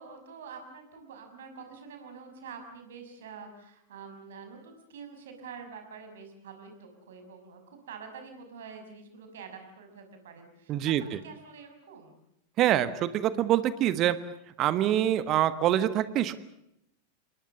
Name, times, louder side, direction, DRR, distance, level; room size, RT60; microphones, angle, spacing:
voice 1, 0.0-11.0 11.2-12.2, right 5 dB, 60° right, 6 dB, 6.0 m, -46 dB
voice 2, 10.7-11.0 12.6-14.2 14.6-16.3, right 12 dB, 35° right, 14 dB, 1.5 m, -25 dB
29.0 x 20.0 x 7.1 m, 0.79 s
figure-of-eight pair, 90°, 0 cm